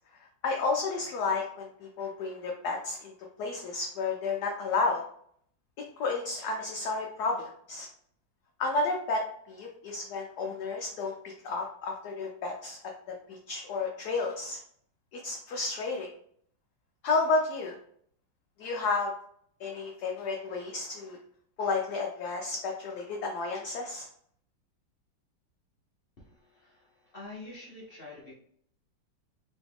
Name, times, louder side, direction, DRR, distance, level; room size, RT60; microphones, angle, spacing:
voice 1, 0.2-3.1 3.4-5.0 6.0-7.9 8.6-12.8 13.1-14.6 15.1-16.1 17.0-17.8 18.6-19.1 19.6-21.2 21.6-24.1, left 3 dB, 75° left, 1 dB, 0.9 m, -31 dB
voice 2, 26.2-28.3, left 2 dB, 55° left, -5 dB, 0.6 m, -47 dB
3.1 x 3.0 x 3.4 m, 0.64 s
omnidirectional pair, 2.1 m